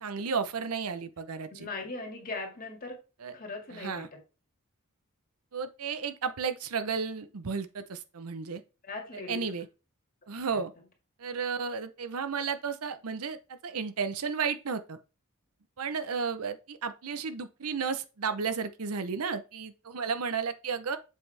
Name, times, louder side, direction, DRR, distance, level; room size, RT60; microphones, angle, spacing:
voice 1, 0.0-1.7 3.2-3.3 3.7-4.1 5.5-8.6 9.3-9.7 10.3-10.7 11.2-13.4 13.6-15.0 15.8-21.0, right 5 dB, 85° right, 0.7 m, -33 dB
voice 2, 1.5-3.0 3.3-4.2 8.8-9.5 10.5-10.6, left 3 dB, 40° left, 2.0 m, -39 dB
7.5 x 5.4 x 3.4 m
head